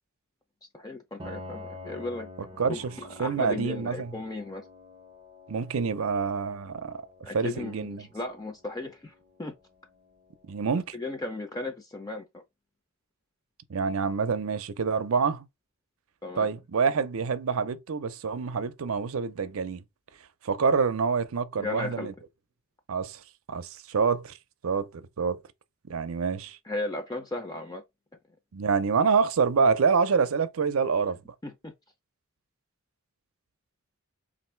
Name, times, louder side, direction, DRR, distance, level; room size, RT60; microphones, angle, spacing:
voice 1, 0.7-2.3 2.7-4.6 7.2-9.1 9.4-9.5 10.9-12.4 16.2-16.5 21.6-22.1 26.7-27.8 31.4-31.7, left 2 dB, 15° left, 0.5 m, -35 dB
Piano, 1.2-10.8, left 2 dB, 25° right, 0.6 m, -48 dB
voice 2, 2.6-2.9 3.2-4.1 5.5-7.0 7.3-8.1 10.5-11.0 13.7-15.5 16.4-19.8 20.4-22.1 22.9-23.2 23.5-24.4 24.6-25.4 25.9-26.6 28.5-31.2, right 5 dB, 75° right, 0.5 m, -26 dB
3.9 x 2.5 x 4.4 m
head